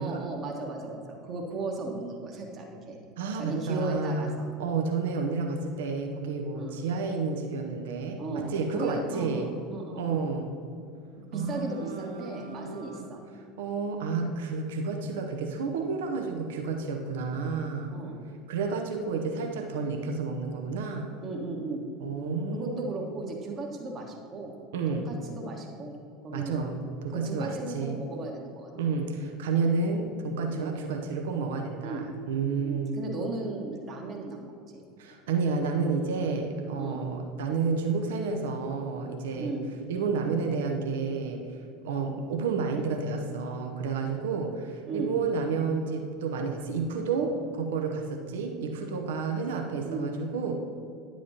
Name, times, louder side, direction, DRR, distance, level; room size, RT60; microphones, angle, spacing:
voice 1, 0.0-3.0 3.4-4.5 6.5-6.8 8.2-10.2 11.2-13.2 17.9-18.2 21.2-21.8 22.5-24.5 24.9-26.0 26.2-26.7 27.1-28.7 30.4-30.7 31.8-32.0 32.6-34.8 36.7-37.0 39.3-39.7 44.9-45.1 49.8-50.1, right 2 dB, 35° right, 1 dB, 1.4 m, -36 dB
voice 2, 3.2-4.3 4.6-9.5 10.0-10.5 11.3-13.0 13.6-17.9 18.5-21.1 22.0-22.8 24.7-25.1 26.3-28.0 28.7-33.1 35.0-39.5 39.9-41.6 41.8-50.5, right 4 dB, 60° right, 3 dB, 0.7 m, -30 dB
10.5 x 7.4 x 2.9 m, 2.5 s
figure-of-eight pair, 75°, 0 cm